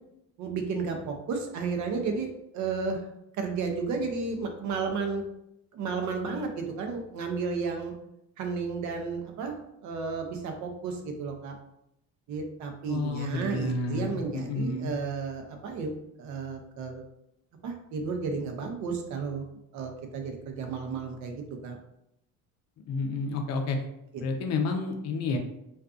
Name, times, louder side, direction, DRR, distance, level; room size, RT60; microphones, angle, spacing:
voice 1, 0.4-3.0 3.4-5.2 5.7-7.9 8.4-11.5 12.3-15.9 16.2-17.0 17.6-19.4 19.7-21.8 24.4-24.5, right 4 dB, 60° right, 4 dB, 0.6 m, -33 dB
voice 2, 12.9-14.9 22.9-23.8 24.2-25.4, left 3 dB, 50° left, 4 dB, 0.5 m, -30 dB
2.5 x 2.4 x 2.3 m, 0.82 s
cardioid pair, 120°, 33 cm